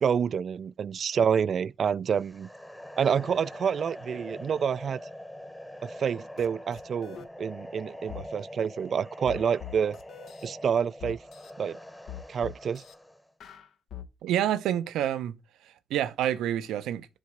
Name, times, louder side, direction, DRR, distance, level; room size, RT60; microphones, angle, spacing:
voice 1, 0.0-2.5 3.0-5.0 5.8-10.0 10.4-11.2 11.6-11.8 12.3-12.8, right 7 dB, 50° right, 0.3 m, -28 dB
sound 1, 2.2-13.3, left 1 dB, 10° left, 1.1 m, -44 dB
sound 2, 6.4-6.5 6.7-7.3 8.1-8.3 9.3-10.5 11.0-11.5 12.1-12.9 13.4-14.1, left 10 dB, 70° left, 0.9 m, -42 dB
voice 2, 14.2-15.4 15.6-17.1, right 11 dB, 85° right, 0.6 m, -28 dB
7.5 x 3.5 x 6.2 m
cardioid pair, 90°, 0 cm